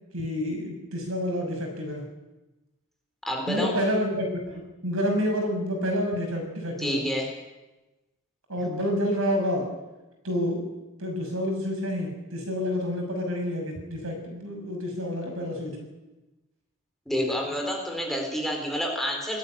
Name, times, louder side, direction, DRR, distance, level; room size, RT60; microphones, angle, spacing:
voice 1, 0.1-2.0 3.5-7.0 8.5-9.7 10.2-10.7 11.0-15.9, equal, 65° right, 3 dB, 6.6 m, -28 dB
voice 2, 3.3-3.7 6.8-7.3 17.1-19.4, equal, ahead, 0 dB, 4.1 m, -28 dB
21.0 x 13.0 x 10.0 m, 1.0 s
head